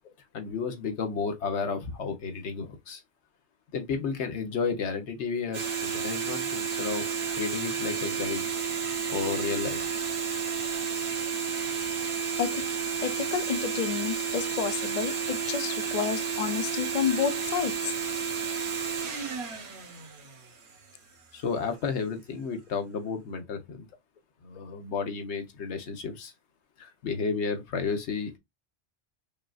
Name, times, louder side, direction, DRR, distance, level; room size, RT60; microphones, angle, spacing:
voice 1, 0.3-3.0 3.7-7.1 7.4-8.5 9.1-9.8 21.3-23.9 24.4-26.3 26.8-28.3, left 5 dB, 80° left, 1.2 m, -32 dB
sound 1, 5.5-20.8, right 6 dB, 70° right, 1.3 m, -31 dB
voice 2, 13.0-17.8, left 8 dB, 55° left, 0.5 m, -30 dB
5.2 x 2.5 x 2.3 m
omnidirectional pair, 1.1 m